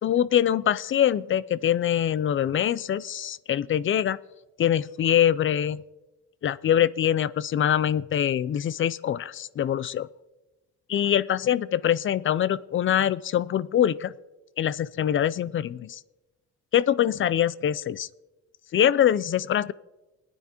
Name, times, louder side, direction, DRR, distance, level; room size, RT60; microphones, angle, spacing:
voice 1, 0.0-4.2 4.6-5.8 6.4-10.1 10.9-14.1 14.6-16.0 16.7-18.1 18.7-19.7, left 10 dB, 45° left, 19 dB, 0.4 m, -24 dB
20.5 x 9.7 x 2.9 m, 1.1 s
cardioid pair, 90°, 30 cm